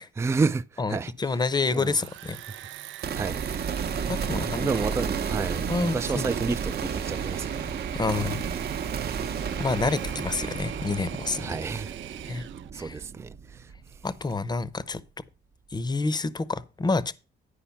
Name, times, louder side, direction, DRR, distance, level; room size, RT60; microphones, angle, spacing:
voice 1, 0.2-1.1 1.7-2.0 2.6-2.7 3.1-3.9 4.5-8.3 11.4-11.9 12.7-13.7, right 4 dB, 15° right, 0.4 m, -31 dB
voice 2, 0.8-2.4 4.1-4.7 5.7-6.3 7.9-8.5 9.6-11.6 12.3-12.5 12.7-13.0 14.0-15.0 15.7-17.1, left 3 dB, 20° left, 0.7 m, -28 dB
Engine / Mechanisms, 1.5-12.7, right 14 dB, 70° right, 0.5 m, -43 dB
sound 1, 3.0-14.4, right 7 dB, 55° right, 0.8 m, -32 dB
10.0 x 5.0 x 5.8 m
cardioid pair, 90°, 20 cm